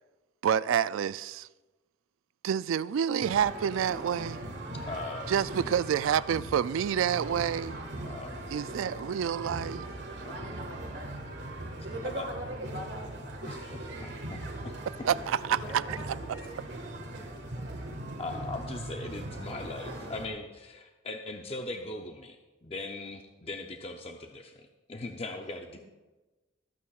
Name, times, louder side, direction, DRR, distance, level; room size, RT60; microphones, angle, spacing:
voice 1, 0.4-1.5 2.4-4.4 5.3-7.8 8.5-9.8 15.1-16.0, right 8 dB, 80° right, 0.3 m, -28 dB
sound 1, 3.2-20.3, right 1 dB, 55° right, 1.6 m, -39 dB
voice 2, 4.8-5.5 8.0-8.8 10.3-11.1 11.8-12.4 13.2-14.7 18.2-25.8, left 2 dB, 30° left, 0.6 m, -40 dB
voice 3, 15.4-16.6 25.7-25.8, equal, 75° left, 3.8 m, -45 dB
22.0 x 8.5 x 2.4 m
head